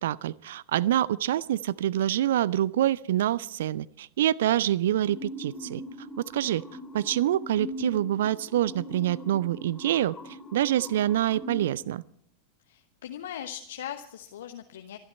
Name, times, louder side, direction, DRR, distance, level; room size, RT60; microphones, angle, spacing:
voice 1, 0.0-5.8 6.2-6.6 6.9-10.2 10.5-12.0, right 12 dB, 60° right, 23 dB, 0.5 m, -26 dB
sound 1, 5.0-11.7, left 1 dB, 10° left, 3.1 m, -41 dB
voice 2, 12.7-15.0, left 10 dB, 60° left, 6 dB, 1.0 m, -39 dB
27.0 x 11.5 x 4.3 m, 0.68 s
figure-of-eight pair, 90°, 0 cm